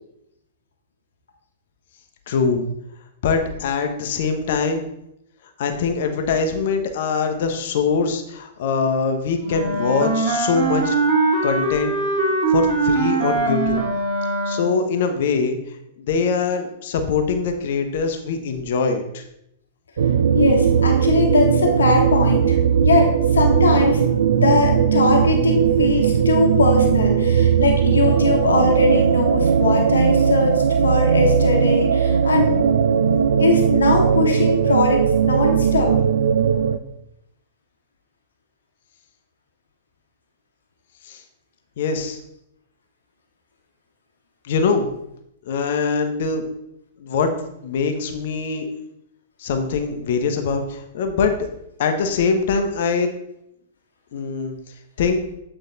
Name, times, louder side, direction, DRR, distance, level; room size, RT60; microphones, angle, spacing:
voice 1, 2.3-2.7 3.2-4.8 5.6-10.9 11.4-11.9 12.2-13.8 14.5-15.6 16.0-19.2 41.0-41.2 41.8-42.2 44.4-44.9 45.5-46.4 47.0-47.3 47.6-48.7 49.4-51.3 51.8-53.1 54.1-54.5 55.0-55.2, left 5 dB, 55° left, 5 dB, 0.8 m, -22 dB
Wind instrument woodwind instrument, 9.4-14.9, right 3 dB, 40° right, 1.6 m, -21 dB
sound 1, 20.0-36.8, right 7 dB, 65° right, 0.4 m, -18 dB
voice 2, 20.3-24.0 24.4-32.7 33.0-35.9, left 3 dB, 70° left, 1 dB, 1.1 m, -21 dB
8.2 x 3.9 x 3.9 m, 0.78 s
figure-of-eight pair, 100°, 0 cm